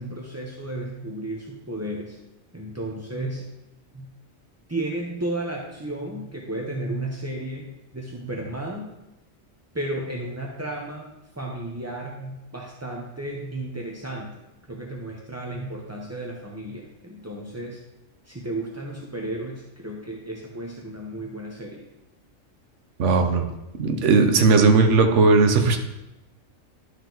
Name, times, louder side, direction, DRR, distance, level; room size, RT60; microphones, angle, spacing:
voice 1, 0.0-2.2 2.5-3.4 3.9-4.1 4.7-8.9 9.7-11.1 11.3-14.4 14.7-17.8 18.2-21.8, right 1 dB, 20° right, -2 dB, 0.5 m, -33 dB
voice 2, 23.0-23.5 23.8-25.8, right 4 dB, 65° right, 5 dB, 1.1 m, -17 dB
11.5 x 4.8 x 3.9 m, 0.97 s
omnidirectional pair, 1.4 m